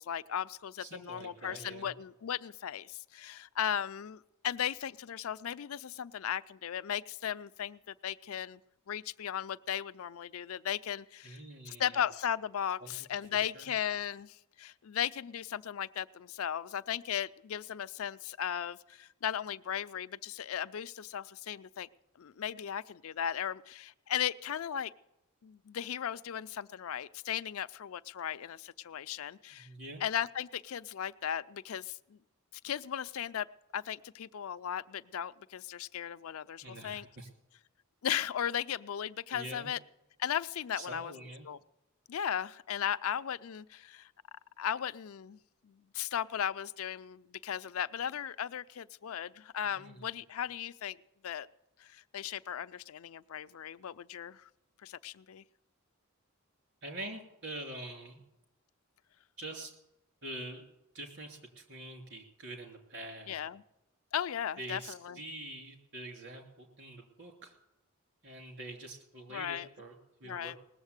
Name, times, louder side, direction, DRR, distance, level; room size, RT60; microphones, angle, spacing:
voice 1, 0.0-8.6 8.9-11.4 11.7-21.9 22.2-24.9 25.4-29.7 30.0-32.2 32.6-33.5 33.7-37.1 38.0-39.8 40.2-41.1 41.4-41.6 42.1-44.1 44.6-45.4 45.6-51.0 51.2-51.5 51.8-54.5 54.8-55.4 63.3-63.6 64.1-65.2 69.3-69.7 70.2-70.6, left 9 dB, 70° left, 13 dB, 0.4 m, -36 dB
voice 2, 0.8-1.9 11.2-12.0 12.8-12.9 13.4-13.7 29.5-30.0 36.6-37.3 39.3-39.7 40.7-41.5 49.6-50.1 56.8-58.2 59.4-59.7 60.2-60.6 60.9-63.4 64.6-67.5 68.2-70.5, right 1 dB, 60° right, 3 dB, 3.0 m, -45 dB
19.5 x 7.3 x 8.1 m, 0.89 s
head